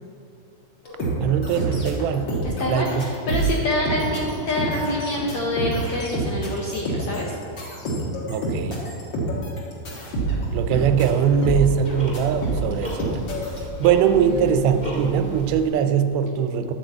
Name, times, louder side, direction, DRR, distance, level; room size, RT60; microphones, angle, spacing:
sound 1, 0.8-13.6, right 2 dB, 45° left, 1.7 m, -27 dB
voice 1, 1.2-2.3 2.6-3.0 8.3-8.9 10.5-13.2 13.6-16.7, right 7 dB, 85° right, 9 dB, 2.5 m, -21 dB
voice 2, 2.4-7.3 14.2-14.7, left 2 dB, 70° left, -3 dB, 1.7 m, -26 dB
Tick-tock, 10.1-15.7, right 1 dB, 20° left, 1.4 m, -34 dB
12.0 x 4.6 x 7.8 m, 2.4 s
omnidirectional pair, 4.4 m